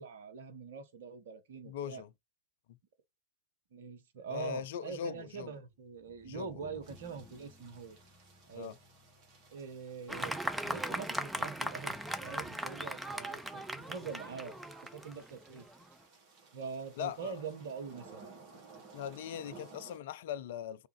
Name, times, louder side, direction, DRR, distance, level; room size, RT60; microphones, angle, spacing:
voice 1, 0.0-2.0 3.7-8.0 8.5-8.7 9.5-11.9 12.2-14.6 14.9-15.7 16.5-18.4, right 5 dB, 60° right, 1.0 m, -44 dB
voice 2, 1.6-2.1 4.3-5.6 6.2-6.5 8.5-8.8 17.0-17.4 18.9-20.9, left 9 dB, 55° left, 0.4 m, -40 dB
sound 1, 5.9-12.3, left 2 dB, 20° left, 2.4 m, -61 dB
sound 2, 6.8-20.0, right 4 dB, 40° right, 2.5 m, -58 dB
Fireworks, 10.1-15.8, right 1 dB, 5° right, 0.8 m, -38 dB
4.8 x 3.5 x 3.1 m
figure-of-eight pair, 90°, 0 cm